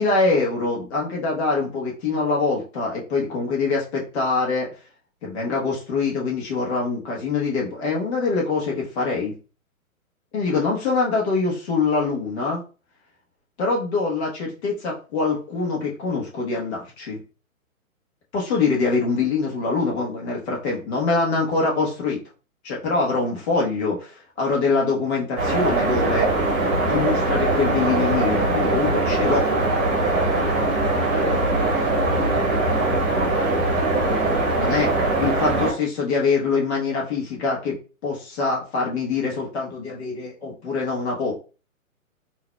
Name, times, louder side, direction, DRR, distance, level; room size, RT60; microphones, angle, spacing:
voice 1, 0.0-4.7 5.2-9.3 10.3-12.6 13.6-17.2 18.3-22.2 22.6-26.3 26.8-29.4 34.6-34.9 35.2-37.7 38.0-41.3, left 4 dB, 50° left, -3 dB, 1.2 m, -24 dB
sound 1, 25.4-35.7, right 2 dB, 20° right, 1.2 m, -21 dB
3.9 x 2.8 x 2.2 m, 0.35 s
figure-of-eight pair, 130°, 43 cm